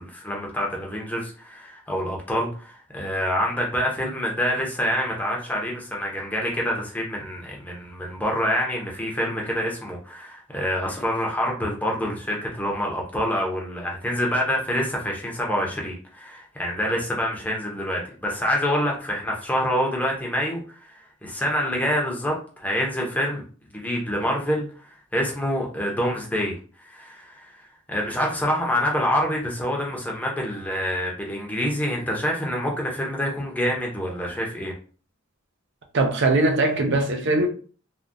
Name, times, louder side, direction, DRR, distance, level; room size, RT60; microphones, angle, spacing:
voice 1, 0.0-23.4 23.7-27.5 27.9-34.7, equal, 10° left, 0.7 m, -26 dB
voice 2, 35.9-37.5, right 2 dB, 55° right, 0.5 m, -21 dB
3.4 x 2.2 x 2.6 m
head